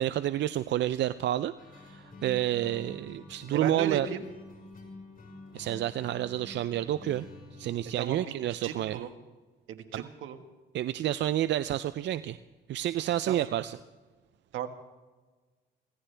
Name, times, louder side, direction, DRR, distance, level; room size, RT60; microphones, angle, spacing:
voice 1, 0.0-1.5 1.8-4.1 5.5-7.3 7.6-9.0 9.9-10.0 10.7-12.4 12.7-13.8, right 12 dB, 65° right, 13 dB, 0.5 m, -29 dB
sound 1, 1.6-7.9, left 2 dB, 45° left, 5.3 m, -48 dB
voice 2, 3.5-4.3 8.0-8.2 8.6-9.1 9.7-10.4 13.2-13.4 14.5-14.7, right 8 dB, 85° right, 7 dB, 1.5 m, -35 dB
25.0 x 16.0 x 3.4 m, 1.3 s
cardioid pair, 90°, 20 cm